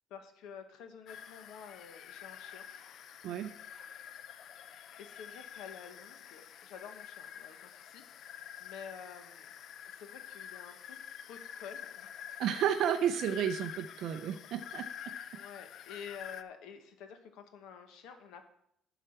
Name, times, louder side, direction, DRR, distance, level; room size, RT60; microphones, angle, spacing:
voice 1, 0.1-2.7 5.0-9.5 9.9-12.3 15.3-18.4, left 7 dB, 80° left, 8 dB, 1.2 m, -50 dB
sound 1, 1.1-16.4, left 9 dB, 50° left, 0.4 m, -48 dB
voice 2, 12.4-14.8, right 9 dB, 60° right, 8 dB, 0.6 m, -31 dB
11.0 x 4.7 x 5.8 m, 0.75 s
cardioid pair, 155°, 0 cm